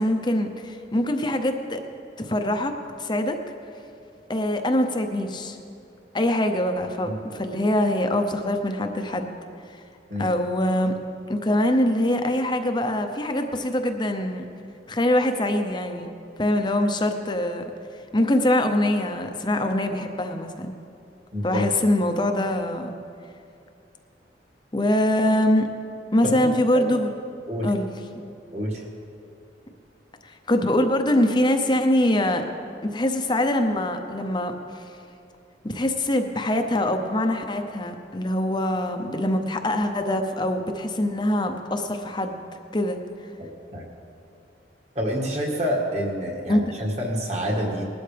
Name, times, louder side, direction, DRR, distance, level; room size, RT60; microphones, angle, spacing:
voice 1, 0.0-1.8 2.2-2.7 3.0-3.4 4.3-5.6 6.1-9.3 9.7-9.8 10.2-10.9 11.3-14.4 14.9-16.1 16.4-17.6 18.1-20.7 21.4-22.9 24.7-25.7 26.1-27.1 27.6-27.9 30.2-32.4 32.8-34.8 35.6-42.5 42.7-43.0 46.5-46.6, left 1 dB, 25° left, 6 dB, 0.7 m, -23 dB
voice 2, 21.3-21.6 26.2-26.5 26.7-26.9 27.5-27.7 28.5-28.8 43.4-43.8 45.0-47.9, equal, 35° right, -1 dB, 2.0 m, -27 dB
20.5 x 12.0 x 3.4 m, 2.5 s
head